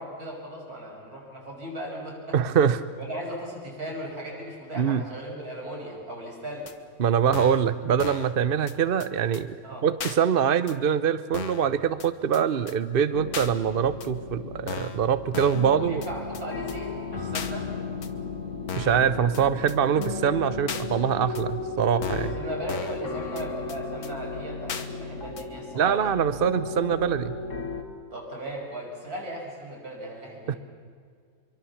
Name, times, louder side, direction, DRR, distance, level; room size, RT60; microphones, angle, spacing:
voice 1, 0.0-2.4 3.0-6.7 9.6-9.8 15.6-17.7 22.2-26.1 28.1-30.6, right 1 dB, 75° right, -1 dB, 6.9 m, -37 dB
voice 2, 2.3-2.8 4.8-5.0 7.0-16.0 18.7-22.4 25.8-27.4 30.5-30.6, right 8 dB, 45° right, 14 dB, 0.8 m, -24 dB
sound 1, 6.7-6.8 7.3-7.7 8.0-8.3 8.7-8.8 9.0-9.1 9.3-9.4 10.0-10.2 10.7-10.8 11.3-11.7 12.0-12.1 12.3-12.4 12.7-12.8 13.3-13.5 14.0-14.1 14.7-15.0 15.3-15.7 16.0-16.1 16.3-16.4 16.7-16.8 17.3-17.5 18.0-18.1 18.7-19.0 19.3-19.4 19.7-19.8 20.0-20.1 20.7-20.8 21.3-21.4 22.0-22.3 22.7-23.0 23.4-23.5 23.7-23.8 24.0-24.1 24.7-24.9 25.4-25.5, left 6 dB, 75° left, 1.8 m, -35 dB
sound 2, 13.1-27.8, left 4 dB, 55° left, 2.4 m, -35 dB
25.0 x 23.5 x 7.3 m, 2.1 s
omnidirectional pair, 1.6 m